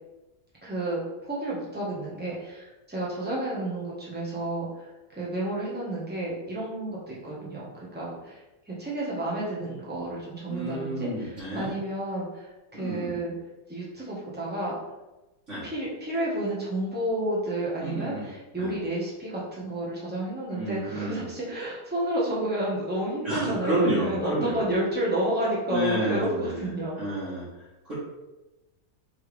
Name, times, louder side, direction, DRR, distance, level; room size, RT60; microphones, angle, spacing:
voice 1, 0.6-8.4 8.7-13.3 13.7-14.7 15.6-27.0, right 1 dB, 5° right, -6 dB, 0.9 m, -31 dB
voice 2, 10.5-11.7 12.7-13.2 15.5-15.7 17.8-18.3 18.6-18.7 20.5-21.3 23.2-24.7 25.7-26.7 26.9-27.9, equal, 50° right, -12 dB, 1.7 m, -30 dB
4.4 x 3.4 x 3.3 m, 1.0 s
omnidirectional pair, 1.8 m